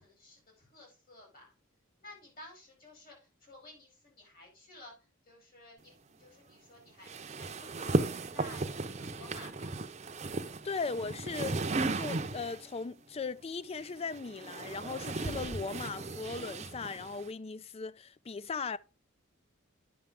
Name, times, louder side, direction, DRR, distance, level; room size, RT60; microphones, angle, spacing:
voice 1, 0.0-1.5 2.0-8.6 9.0-9.7, left 1 dB, 45° left, 5.9 m, -54 dB
sound 1, 7.1-12.7 13.7-17.3, right 3 dB, 35° right, 0.7 m, -35 dB
voice 2, 10.6-18.8, left 4 dB, 30° left, 0.4 m, -38 dB
9.4 x 6.5 x 3.6 m
head